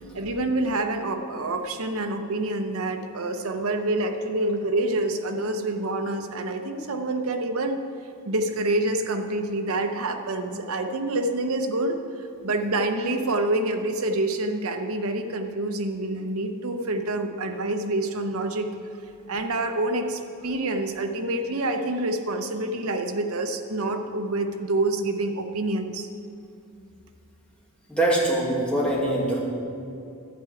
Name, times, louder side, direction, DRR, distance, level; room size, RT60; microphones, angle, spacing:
voice 1, 0.1-7.8 8.2-12.0 12.4-18.7 19.3-26.1, right 2 dB, 70° right, 6 dB, 0.8 m, -27 dB
voice 2, 27.9-29.4, right 1 dB, 5° left, -4 dB, 1.7 m, -23 dB
11.0 x 4.8 x 8.3 m, 2.6 s
head